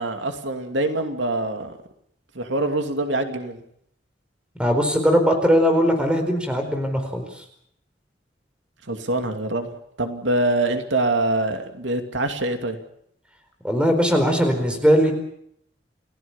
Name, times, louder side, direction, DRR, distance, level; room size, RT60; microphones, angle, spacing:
voice 1, 0.0-1.8 2.3-3.6 8.8-9.7 10.0-12.8, right 2 dB, 85° right, 6 dB, 2.7 m, -24 dB
voice 2, 4.6-7.4 13.6-15.1, equal, 5° right, 5 dB, 4.5 m, -20 dB
29.0 x 17.5 x 7.3 m, 0.71 s
head